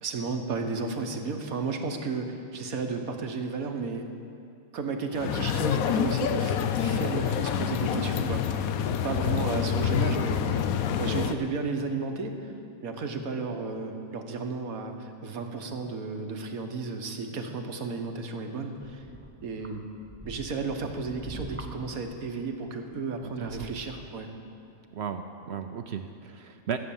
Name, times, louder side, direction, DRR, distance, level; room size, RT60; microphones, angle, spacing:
voice 1, 0.0-4.1 4.7-8.7 9.0-10.6 11.0-12.5 12.8-19.0 19.4-19.9 20.3-24.3 25.9-26.0, right 4 dB, 85° right, 5 dB, 1.6 m, -33 dB
sound 1, 5.1-11.3, left 8 dB, 85° left, 1.1 m, -27 dB
Parque da Cidade - Fonte, 18.8-24.1 24.8-24.9, right 2 dB, 10° right, 0.7 m, -45 dB
voice 2, 23.4-23.7 24.9-26.8, right 7 dB, 60° right, 7 dB, 0.8 m, -35 dB
14.0 x 9.0 x 7.1 m, 2.6 s
omnidirectional pair, 1.4 m